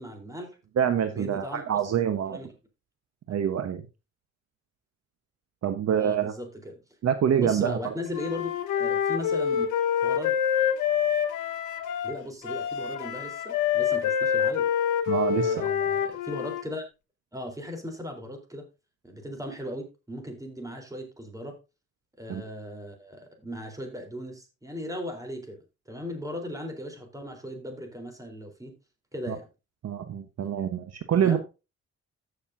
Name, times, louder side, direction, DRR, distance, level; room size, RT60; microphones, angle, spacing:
voice 1, 0.0-0.6 1.1-1.6 2.3-2.5 5.9-6.8 7.4-9.7 10.0-10.4 12.0-14.7 15.4-16.9 17.3-18.6 19.0-21.5 22.2-25.6 25.9-28.7 29.1-29.5 31.2-31.4, left 1 dB, 10° right, 4 dB, 3.8 m, -37 dB
voice 2, 0.8-2.4 3.3-3.8 5.6-6.3 7.0-7.9 15.1-15.7 22.3-22.4 29.3-29.4 29.8-31.4, right 8 dB, 55° right, 8 dB, 1.1 m, -26 dB
Wind instrument woodwind instrument, 8.1-16.6, left 8 dB, 85° left, 1.4 m, -26 dB
14.5 x 6.7 x 2.7 m, 0.28 s
cardioid pair, 90°, 30 cm